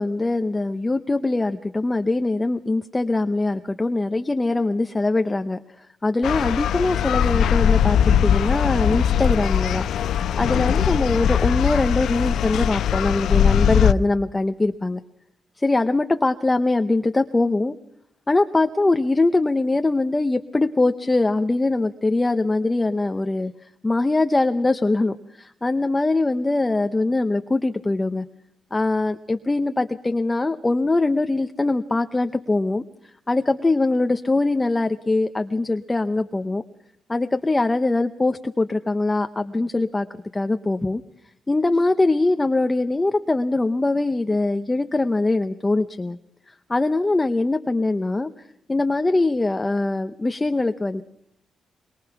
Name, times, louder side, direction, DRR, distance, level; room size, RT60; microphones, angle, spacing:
voice 1, 0.0-9.8 10.4-15.0 15.6-17.7 18.3-28.3 28.7-32.8 33.3-36.6 37.1-40.1 40.3-41.0 41.5-46.2 46.7-51.0, left 2 dB, 15° left, 8 dB, 0.7 m, -22 dB
sound 1, 6.2-13.9, left 9 dB, 90° left, 0.8 m, -20 dB
22.5 x 22.0 x 5.9 m, 0.75 s
wide cardioid pair, 170°, 0 cm